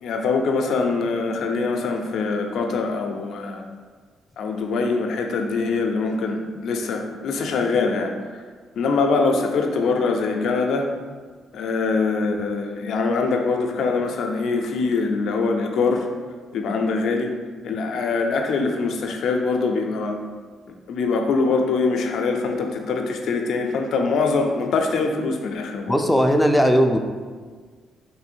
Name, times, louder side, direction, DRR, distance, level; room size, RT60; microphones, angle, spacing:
voice 1, 0.0-3.7 4.4-8.1 8.8-10.9 11.5-16.1 16.5-17.3 17.6-20.2 20.9-26.0, left 4 dB, 70° left, 3 dB, 0.4 m, -23 dB
voice 2, 25.9-27.0, equal, 5° left, 4 dB, 0.4 m, -17 dB
3.1 x 2.6 x 4.4 m, 1.5 s
cardioid pair, 90°, 0 cm